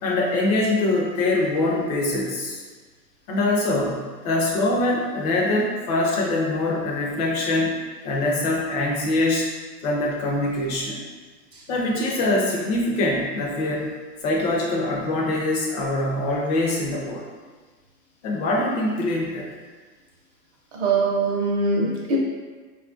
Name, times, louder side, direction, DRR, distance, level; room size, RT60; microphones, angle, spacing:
voice 1, 0.0-2.6 3.3-7.8 8.0-9.5 9.8-11.0 11.7-13.9 14.2-17.2 18.2-19.5, left 2 dB, 25° left, -2 dB, 0.4 m, -23 dB
voice 2, 20.7-22.2, right 3 dB, 35° right, -3 dB, 0.6 m, -22 dB
4.0 x 2.4 x 2.5 m, 1.4 s
hypercardioid pair, 135°, 50 cm